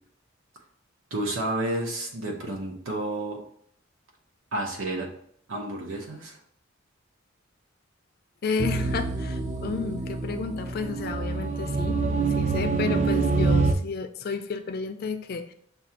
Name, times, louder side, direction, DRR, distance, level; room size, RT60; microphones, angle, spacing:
voice 1, 1.1-3.4 4.5-5.1 5.5-6.4, right 1 dB, 90° right, 0 dB, 0.8 m, -30 dB
voice 2, 8.4-12.0 12.4-15.5, left 4 dB, 50° left, 8 dB, 0.4 m, -31 dB
sound 1, 8.6-13.7, right 3 dB, 35° right, 0.4 m, -26 dB
6.1 x 2.3 x 2.8 m, 0.66 s
head